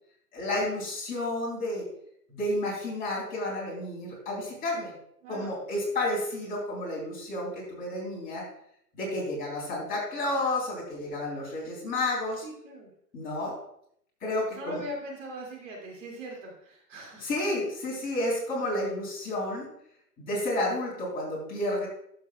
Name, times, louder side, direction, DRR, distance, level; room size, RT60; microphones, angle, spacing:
voice 1, 0.3-1.8 2.3-4.9 5.3-8.5 8.9-12.4 13.1-13.6 14.2-14.8 17.2-19.7 20.2-21.9, left 1 dB, 20° left, -5 dB, 3.5 m, -31 dB
voice 2, 5.2-5.6 12.4-12.9 14.5-17.3, equal, 50° right, -1 dB, 2.5 m, -40 dB
12.0 x 7.0 x 2.3 m, 0.69 s
hypercardioid pair, 140°, 49 cm